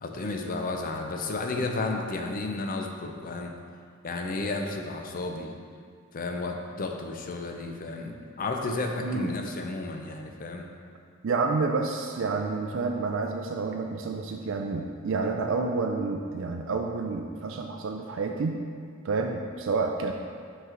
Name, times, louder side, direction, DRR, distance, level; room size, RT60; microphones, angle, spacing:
voice 1, 0.0-3.5 4.0-5.5 6.1-10.7, left 3 dB, 45° left, 3 dB, 0.6 m, -32 dB
voice 2, 9.0-9.4 11.2-18.6 19.0-20.1, right 4 dB, 65° right, 3 dB, 0.4 m, -29 dB
5.8 x 5.3 x 3.8 m, 2.1 s
head